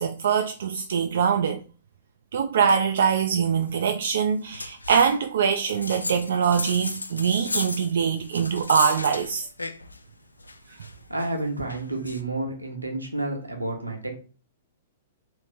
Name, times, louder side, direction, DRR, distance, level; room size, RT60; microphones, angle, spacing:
voice 1, 0.0-1.6 2.3-9.5, right 7 dB, 60° right, 0.3 m, -23 dB
sound 1, 4.5-5.2 5.6-10.0 10.4-12.2, left 3 dB, 85° left, 0.3 m, -34 dB
voice 2, 11.1-14.2, right 2 dB, 90° right, 1.0 m, -30 dB
3.0 x 2.9 x 3.5 m
figure-of-eight pair, 110°, 0 cm